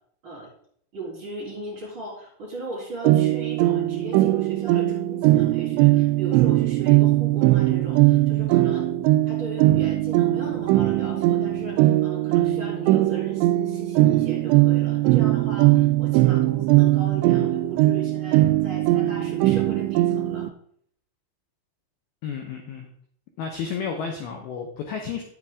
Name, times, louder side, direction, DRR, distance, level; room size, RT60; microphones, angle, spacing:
voice 1, 0.9-8.9 9.3-20.5, right 2 dB, 30° right, -5 dB, 3.7 m, -37 dB
sound 1, 3.0-20.5, right 16 dB, 85° right, 2.5 m, -20 dB
voice 2, 22.2-22.9 23.4-25.2, left 6 dB, 85° left, 3 dB, 2.2 m, -31 dB
10.5 x 7.2 x 3.6 m, 0.62 s
omnidirectional pair, 5.7 m